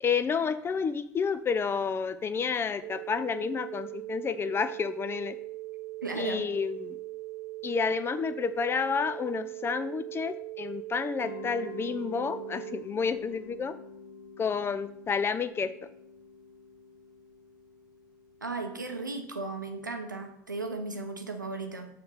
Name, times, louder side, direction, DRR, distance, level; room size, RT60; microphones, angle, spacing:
voice 1, 0.0-5.4 6.2-7.0 7.6-13.7 14.4-15.7, left 6 dB, 25° left, 13 dB, 0.4 m, -30 dB
sound 1, 2.8-12.8, right 18 dB, 50° right, 0.4 m, -40 dB
voice 2, 6.0-6.4 18.4-21.9, right 3 dB, 85° right, 5 dB, 0.7 m, -35 dB
Mallet percussion, 11.2-19.9, left 5 dB, 80° left, 0.8 m, -48 dB
6.8 x 3.7 x 5.6 m, 0.74 s
figure-of-eight pair, 65°, 10 cm